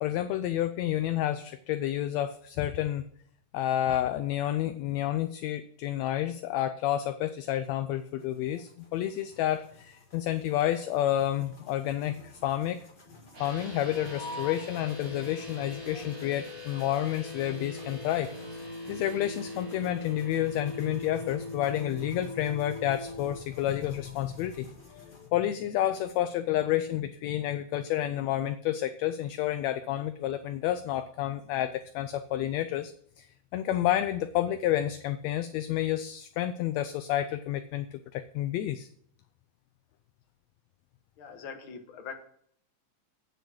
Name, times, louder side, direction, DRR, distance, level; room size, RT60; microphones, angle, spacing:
voice 1, 0.0-3.0 3.5-12.8 13.4-24.7 25.3-32.9 33.2-33.3 33.5-38.9, left 12 dB, 80° left, 10 dB, 1.7 m, -30 dB
sound 1, 7.9-25.3, left 3 dB, 25° left, 1.3 m, -50 dB
sound 2, 13.3-23.3, left 2 dB, 55° right, 5.5 m, -41 dB
voice 2, 41.2-42.2, left 6 dB, 50° left, 4 dB, 2.0 m, -42 dB
9.2 x 7.9 x 6.3 m, 0.64 s
omnidirectional pair, 3.3 m